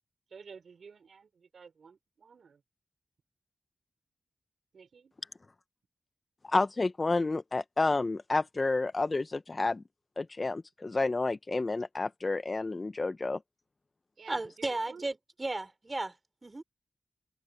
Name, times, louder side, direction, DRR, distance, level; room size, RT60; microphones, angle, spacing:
voice 1, 0.3-2.6 4.7-5.1 14.2-15.1, right 5 dB, 70° right, 5.2 m, -52 dB
voice 2, 6.4-9.8 10.2-13.4, left 3 dB, 35° left, 0.5 m, -30 dB
voice 3, 14.3-16.2 16.4-16.6, right 2 dB, 25° right, 3.1 m, -34 dB
wide cardioid pair, 90°, 0 cm